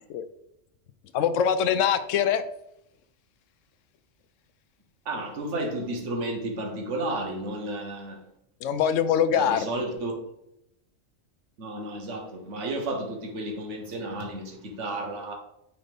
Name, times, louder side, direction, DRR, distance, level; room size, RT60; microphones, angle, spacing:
voice 1, 1.1-2.4 8.6-9.8, left 8 dB, 80° left, 0.9 m, -23 dB
voice 2, 5.0-8.2 9.3-10.2 11.6-15.4, right 1 dB, 70° right, 1.5 m, -32 dB
9.2 x 3.9 x 3.5 m
omnidirectional pair, 1.3 m